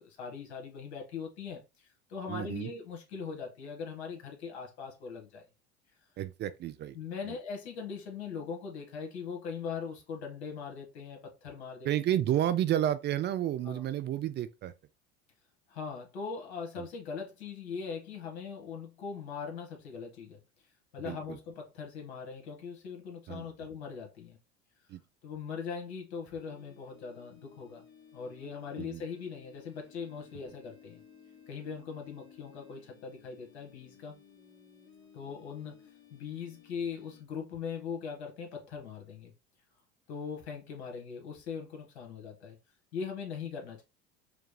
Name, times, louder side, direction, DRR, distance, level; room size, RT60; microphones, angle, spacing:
voice 1, 0.0-5.4 6.9-11.9 13.6-13.8 15.7-20.4 20.9-24.4 25.2-27.8 28.1-31.0 31.5-34.1 35.1-35.8 36.1-39.3 40.1-42.6 42.9-43.8, left 6 dB, 80° left, 1.6 m, -40 dB
voice 2, 2.3-2.7 6.2-6.9 7.3-7.4 11.8-14.7 16.8-16.9 21.0-21.4 23.3-23.5 24.9-25.0 28.8-29.0, right 11 dB, 35° right, 0.4 m, -31 dB
sound 1, 26.3-37.2, left 7 dB, 35° left, 1.6 m, -57 dB
4.9 x 2.2 x 3.2 m
hypercardioid pair, 85°, 33 cm